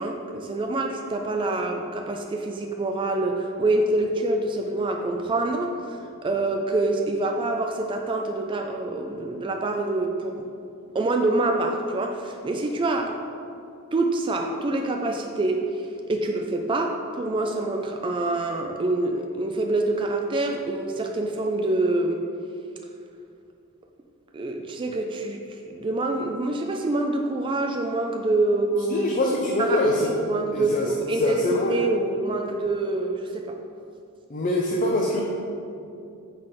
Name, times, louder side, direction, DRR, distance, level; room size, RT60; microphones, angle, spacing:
voice 1, 0.0-10.4 10.9-13.2 13.9-15.7 16.1-22.2 24.3-29.1 29.6-31.4 31.7-33.6, right 2 dB, 20° right, 3 dB, 0.3 m, -26 dB
voice 2, 28.9-30.1 30.5-30.9 31.2-31.8 34.3-35.2, left 1 dB, 35° left, -1 dB, 0.5 m, -24 dB
4.9 x 4.1 x 5.6 m, 2.5 s
head